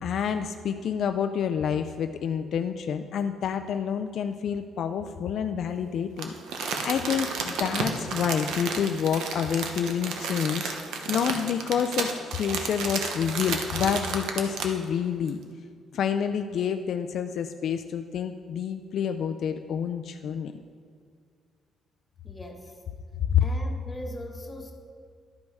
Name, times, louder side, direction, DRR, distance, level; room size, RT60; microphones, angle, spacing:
voice 1, 0.0-15.4 15.9-20.5 23.3-23.4, left 8 dB, 70° left, 7 dB, 0.4 m, -28 dB
Crumpling crinkling, 6.2-14.8 15.3-15.4, right 5 dB, 85° right, 0.9 m, -32 dB
voice 2, 22.2-22.8 23.4-24.7, left 1 dB, 20° left, 1 dB, 1.3 m, -40 dB
11.5 x 5.3 x 4.7 m, 2.1 s
cardioid pair, 90°, 0 cm